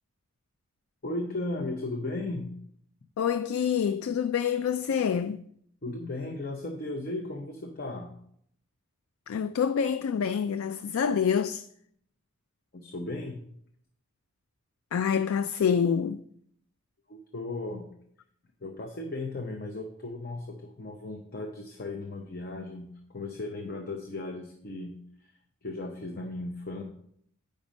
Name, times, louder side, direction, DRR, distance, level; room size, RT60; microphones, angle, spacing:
voice 1, 1.0-2.6 5.8-8.1 12.7-13.4 17.1-17.9 18.6-25.3 25.6-26.8, left 2 dB, 45° left, 0.7 m, -36 dB
voice 2, 3.2-5.4 9.3-11.7 14.9-16.2, left 7 dB, 75° left, 0.3 m, -27 dB
8.6 x 5.2 x 5.2 m
head